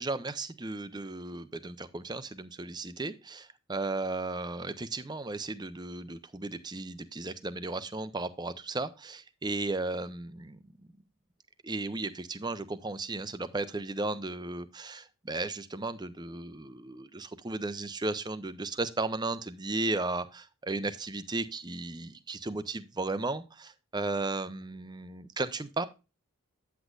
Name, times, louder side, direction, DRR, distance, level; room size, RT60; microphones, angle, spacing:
voice 1, 0.0-10.6 11.6-25.9, right 2 dB, 20° right, 13 dB, 0.6 m, -35 dB
9.3 x 8.1 x 2.4 m, 0.29 s
head